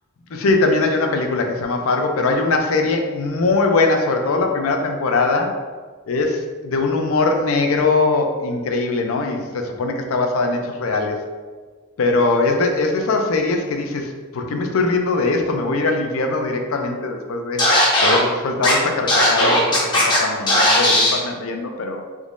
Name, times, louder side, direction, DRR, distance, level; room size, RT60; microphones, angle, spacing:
voice 1, 0.3-5.5 6.1-11.2 12.0-17.7 18.0-22.0, left 3 dB, 65° left, 4 dB, 0.4 m, -21 dB
Scratching (performance technique), 17.6-18.2 18.6-18.7 19.1-20.2 20.5-21.2, left 1 dB, 20° left, 0.6 m, -16 dB
3.6 x 3.0 x 2.5 m, 1.4 s
head